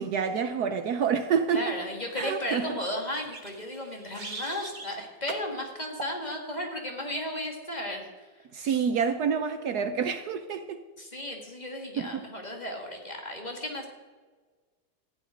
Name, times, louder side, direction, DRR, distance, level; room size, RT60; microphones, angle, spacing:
voice 1, 0.0-1.7 2.2-2.8 8.5-10.8 12.0-12.2, right 6 dB, 65° right, 1.2 m, -28 dB
voice 2, 1.5-8.8 11.0-13.9, left 1 dB, 25° left, 2.1 m, -35 dB
sound 1, 3.1-5.0 5.3-5.5 6.0-6.2, right 3 dB, 30° right, 1.4 m, -41 dB
15.0 x 6.2 x 10.0 m
omnidirectional pair, 1.9 m